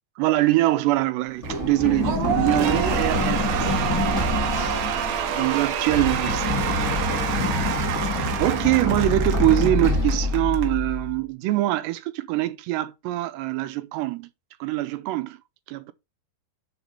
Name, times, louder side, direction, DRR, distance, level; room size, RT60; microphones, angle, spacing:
voice 1, 0.2-3.7 4.1-4.4 5.3-6.6 8.4-14.3 14.6-15.4 15.7-15.9, right 17 dB, 85° right, 2.9 m, -24 dB
Run, 1.4-11.2, left 2 dB, 5° left, 2.1 m, -26 dB
Cheering / Applause / Crowd, 2.0-10.7, right 8 dB, 70° right, 2.6 m, -28 dB
6.4 x 4.8 x 5.4 m
omnidirectional pair, 4.8 m